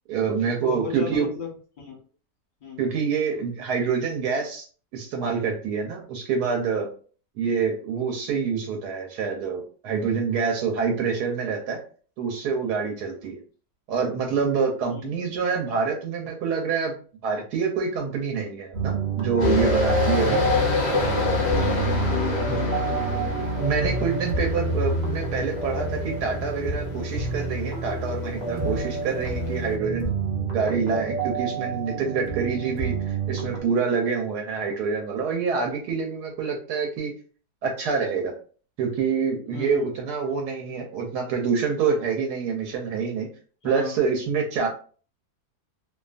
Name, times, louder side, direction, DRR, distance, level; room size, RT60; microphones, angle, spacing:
voice 1, 0.1-1.3 2.8-4.7 4.9-6.9 7.4-11.8 12.2-13.4 13.9-17.0 17.2-20.4 22.4-22.6 23.6-30.1 30.4-37.1 37.6-38.3 38.8-43.3 43.6-44.7, right 5 dB, 75° right, 1 dB, 1.1 m, -26 dB
voice 2, 0.6-1.5 1.8-2.0 2.6-2.8 14.9-15.1 21.4-23.5 39.5-39.9 43.6-43.9, left 6 dB, 45° left, -1 dB, 0.7 m, -34 dB
sound 1, 18.7-33.6, right 4 dB, 50° right, 0.5 m, -29 dB
sound 2, 19.4-29.7, left 3 dB, 75° left, 0.4 m, -27 dB
2.6 x 2.3 x 2.4 m, 0.41 s
omnidirectional pair, 1.7 m